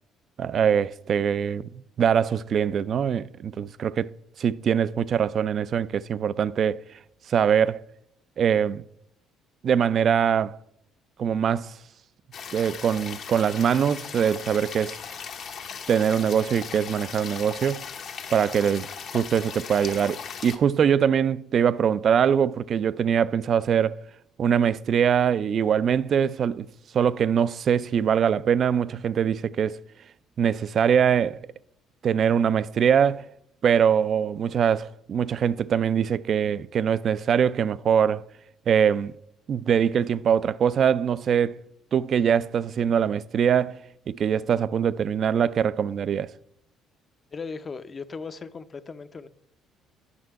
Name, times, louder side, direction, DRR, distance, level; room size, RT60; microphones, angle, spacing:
voice 1, 0.4-4.1 4.4-6.8 7.3-7.8 8.4-8.8 9.6-10.6 11.2-11.7 12.5-15.0 15.9-17.8 18.3-18.9 19.1-24.0 24.4-26.7 26.9-29.8 30.4-31.4 32.0-33.3 33.6-38.2 38.7-39.1 39.5-41.6 41.9-43.8 44.1-46.3, right 8 dB, 55° right, 0.3 m, -23 dB
sound 1, 12.3-20.6, left 6 dB, 60° left, 0.9 m, -38 dB
voice 2, 47.3-49.3, left 4 dB, 35° left, 0.5 m, -37 dB
9.7 x 5.5 x 4.6 m
supercardioid pair, 75°, 0 cm